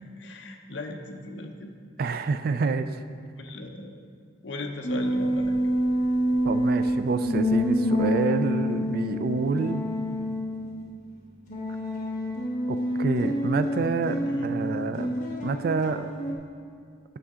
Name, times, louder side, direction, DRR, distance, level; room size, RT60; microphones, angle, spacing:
voice 1, 0.2-1.7 2.0-2.1 3.4-4.0 4.4-5.5 14.2-14.6, left 2 dB, 65° left, 3 dB, 0.7 m, -38 dB
voice 2, 2.0-2.9 6.4-9.8 12.7-15.1 15.4-16.1, right 4 dB, 50° right, 10 dB, 0.3 m, -28 dB
sound 1, 4.8-10.8 11.5-16.3, equal, 40° left, 1.1 m, -27 dB
8.6 x 6.8 x 3.7 m, 2.2 s
head